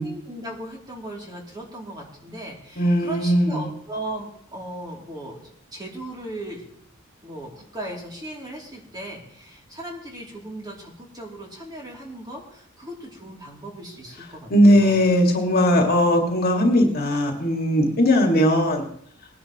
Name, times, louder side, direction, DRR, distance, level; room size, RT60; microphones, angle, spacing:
voice 1, 0.0-6.6 7.2-15.0, right 1 dB, 20° right, -2 dB, 2.9 m, -37 dB
voice 2, 2.8-3.7 14.5-18.9, equal, 50° left, 2 dB, 2.1 m, -18 dB
20.5 x 10.0 x 3.0 m, 0.65 s
head